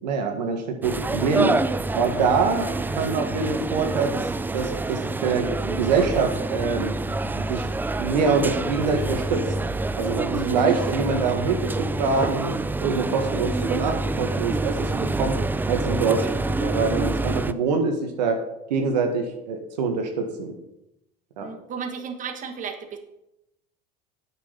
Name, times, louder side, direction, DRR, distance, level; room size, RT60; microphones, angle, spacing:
voice 1, 0.0-1.6 1.9-4.2 4.5-6.9 7.3-7.7 8.0-9.4 9.9-12.5 12.8-15.4 15.6-18.4 18.7-20.5 21.4-21.5, right 4 dB, 85° right, 4 dB, 1.6 m, -25 dB
sound 1, 0.8-17.5, right 2 dB, 10° right, 0.4 m, -27 dB
voice 2, 10.4-10.8 21.4-23.0, right 6 dB, 40° right, 6 dB, 1.4 m, -32 dB
8.9 x 6.3 x 5.7 m, 0.87 s
hypercardioid pair, 85°, 21 cm